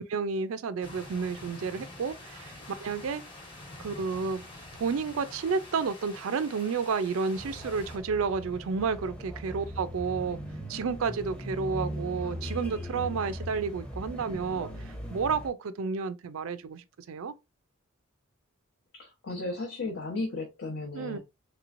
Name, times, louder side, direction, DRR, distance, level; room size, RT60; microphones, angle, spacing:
voice 1, 0.0-2.5 2.8-3.2 3.8-4.4 4.8-10.4 10.7-17.3 20.9-21.2, right 5 dB, 70° right, 0.4 m, -31 dB
sound 1, 0.8-8.0, left 2 dB, 25° left, 1.0 m, -46 dB
sound 2, 7.3-15.5, equal, 5° left, 0.7 m, -39 dB
voice 2, 18.9-21.2, left 2 dB, 55° left, 0.8 m, -35 dB
3.3 x 3.0 x 2.5 m
head